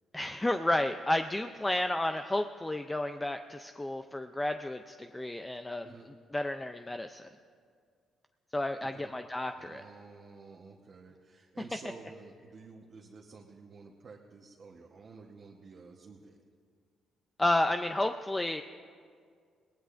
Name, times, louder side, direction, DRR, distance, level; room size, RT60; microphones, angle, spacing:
voice 1, 0.1-5.9 6.3-7.2 8.5-9.8 17.4-18.6, left 1 dB, 15° left, 7 dB, 0.5 m, -31 dB
voice 2, 8.8-9.1 9.5-16.4, right 4 dB, 50° right, -1 dB, 1.1 m, -51 dB
21.0 x 18.5 x 2.6 m, 2.1 s
cardioid pair, 90°, 0 cm